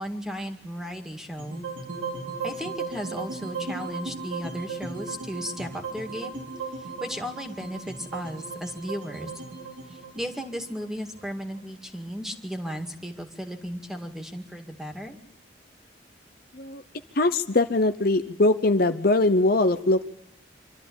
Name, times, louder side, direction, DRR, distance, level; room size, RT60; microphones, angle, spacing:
voice 1, 0.0-1.7 2.4-6.4 6.8-9.3 9.9-15.2, equal, 5° right, 5 dB, 2.1 m, -35 dB
sound 1, 1.4-11.6, right 4 dB, 80° right, 4.4 m, -36 dB
voice 2, 17.2-20.0, left 2 dB, 50° left, 9 dB, 0.8 m, -21 dB
26.0 x 13.5 x 8.7 m, 0.83 s
head